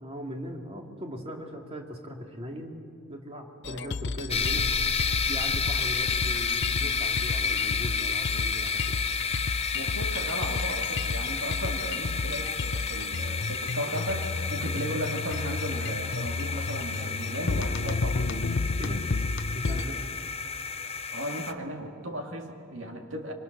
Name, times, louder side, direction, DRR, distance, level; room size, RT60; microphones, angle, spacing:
voice 1, 0.0-2.7 3.1-4.7 5.1-9.0 18.8-19.0 19.5-20.1, equal, 25° right, 2 dB, 2.5 m, -39 dB
sound 1, 3.6-19.8, left 3 dB, 55° left, 0.6 m, -32 dB
sound 2, 4.3-21.5, left 5 dB, 30° left, 0.8 m, -31 dB
voice 2, 9.7-18.5 19.0-19.1 21.1-23.3, right 1 dB, 65° right, 3 dB, 2.6 m, -36 dB
Laughter, 12.4-18.7 18.9-19.4, left 1 dB, 5° left, 2.0 m, -50 dB
26.0 x 24.0 x 6.8 m, 2.5 s
head